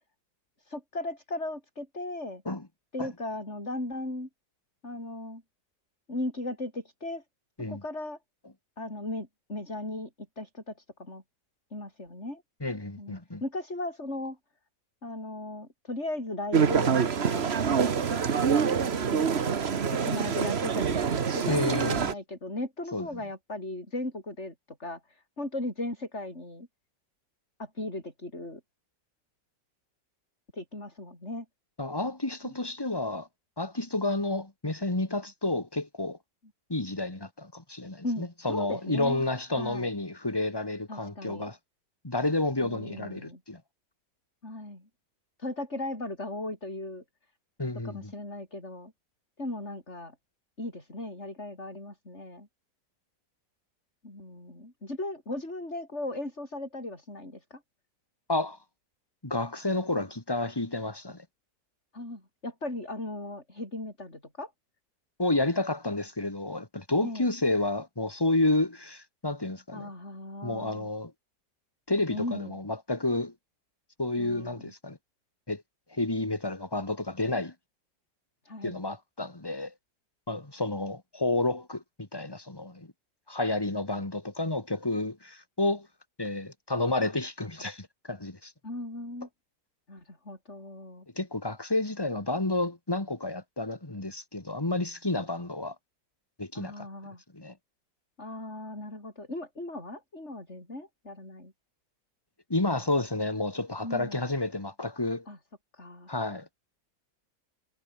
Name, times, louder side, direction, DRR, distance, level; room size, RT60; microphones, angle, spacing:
voice 1, 0.6-2.4 2.9-4.3 4.8-5.4 6.1-7.2 7.7-8.2 8.8-10.1 10.4-10.7 11.0-11.2 11.7-12.4 13.0-13.1 13.4-14.4 15.0-17.5 18.6-19.2 19.9-26.7 27.6-28.6 30.5-31.5 32.4-32.5 38.0-39.3 39.5-39.9 40.9-41.5 42.6-43.4 44.4-44.9 45.4-47.0 47.8-48.9 49.4-50.1 50.6-52.5 54.0-57.6 61.9-64.5 67.0-67.3 69.7-71.0 72.1-72.5 74.2-74.7 78.4-78.8 88.6-89.3 89.9-91.0 96.5-97.2 98.2-101.5 103.8-104.2 105.3-105.4 105.7-106.1, left 2 dB, 35° left, 7.8 m, -37 dB
voice 2, 12.6-13.4 21.5-22.1 22.9-23.1 31.8-33.3 33.6-36.2 36.7-41.6 42.0-43.6 47.6-48.1 58.3-58.6 59.2-61.3 65.2-69.9 70.4-71.1 71.9-73.3 74.0-75.0 75.5-75.6 75.9-77.5 78.6-79.7 80.3-82.9 83.3-85.9 86.2-88.5 91.2-95.7 96.4-96.9 97.3-97.5 102.5-105.2 106.1-106.5, left 2 dB, 15° left, 2.3 m, -30 dB
sound 1, 16.5-22.1, right 6 dB, 40° right, 1.3 m, -26 dB
omnidirectional pair, 2.0 m